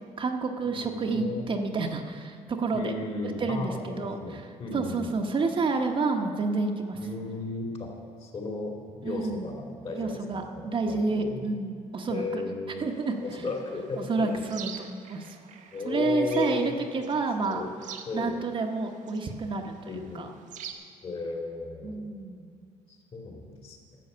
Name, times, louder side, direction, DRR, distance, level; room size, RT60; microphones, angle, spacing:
voice 1, 0.0-3.0 3.4-4.5 4.7-7.0 9.0-9.5 9.9-12.4 12.8-13.1 14.0-15.4 15.8-17.7 18.1-20.3 21.8-22.5, right 3 dB, 40° right, 3 dB, 1.0 m, -29 dB
voice 2, 0.6-1.5 2.7-5.1 6.9-7.9 8.2-11.5 12.1-12.8 13.2-14.4 15.7-16.8 17.4-17.7 18.1-18.4 19.9-20.3 21.0-22.0 22.9-23.8, left 3 dB, 45° left, 1 dB, 2.4 m, -35 dB
sound 1, 12.9-20.7, right 8 dB, 70° right, 0.9 m, -46 dB
12.0 x 7.8 x 6.8 m, 2.2 s
cardioid pair, 100°, 13 cm